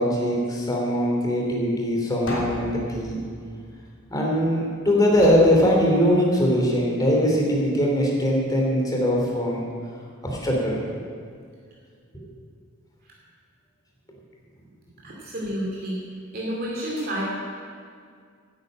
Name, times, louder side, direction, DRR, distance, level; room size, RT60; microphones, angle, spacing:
voice 1, 0.0-3.2 4.1-9.6 10.2-10.8 12.1-12.3, equal, 20° left, -2 dB, 2.9 m, -21 dB
sound 1, 2.3-4.5 5.1-6.5, left 1 dB, 65° left, 3.3 m, -36 dB
voice 2, 15.0-16.0 16.3-17.2, equal, 45° right, -4 dB, 2.6 m, -30 dB
10.5 x 9.4 x 8.8 m, 2.1 s
head